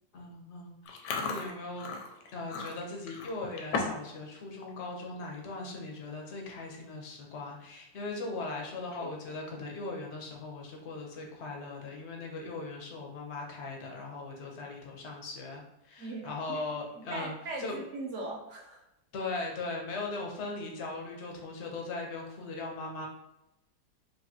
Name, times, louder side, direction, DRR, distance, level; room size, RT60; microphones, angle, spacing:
voice 1, 0.1-0.8 1.2-1.9 2.3-17.8 19.1-23.1, left 3 dB, 60° left, 0 dB, 0.7 m, -39 dB
Chewing mastication, 0.9-4.1 4.4-4.7 5.2-5.4 6.1-6.2 6.5-6.8 7.2-7.3 8.8-9.3, left 4 dB, 75° left, 1.2 m, -37 dB
voice 2, 16.0-16.6 17.0-18.8, right 2 dB, 65° right, -1 dB, 0.7 m, -40 dB
4.6 x 2.6 x 2.7 m, 0.87 s
omnidirectional pair, 1.9 m